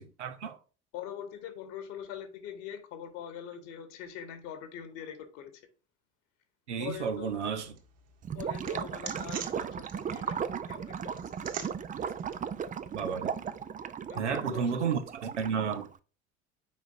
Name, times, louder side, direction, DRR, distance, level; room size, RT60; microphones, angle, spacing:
voice 1, 0.2-0.6 6.7-7.7 12.9-13.3 14.2-15.9, right 7 dB, 80° right, 1.0 m, -32 dB
voice 2, 0.9-5.6 6.8-7.3 8.3-11.5 14.1-14.9, left 9 dB, 60° left, 1.7 m, -43 dB
sound 1, 6.8-13.6, right 7 dB, 45° right, 1.8 m, -46 dB
Gurgling / Liquid, 8.2-16.0, right 7 dB, 25° right, 0.5 m, -36 dB
7.3 x 5.1 x 2.7 m
figure-of-eight pair, 60°, 34 cm